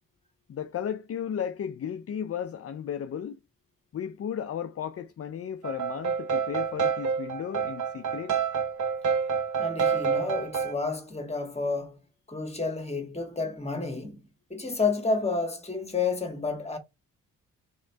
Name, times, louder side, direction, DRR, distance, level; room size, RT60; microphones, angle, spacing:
voice 1, 0.5-3.4 3.9-8.4, left 8 dB, 45° left, 0.5 m, -34 dB
sound 1, 5.6-10.7, right 6 dB, 55° right, 0.9 m, -28 dB
voice 2, 9.6-12.0 12.3-14.2 14.5-16.8, left 4 dB, 20° left, 1.6 m, -30 dB
3.7 x 3.1 x 4.5 m
cardioid pair, 70°, 35 cm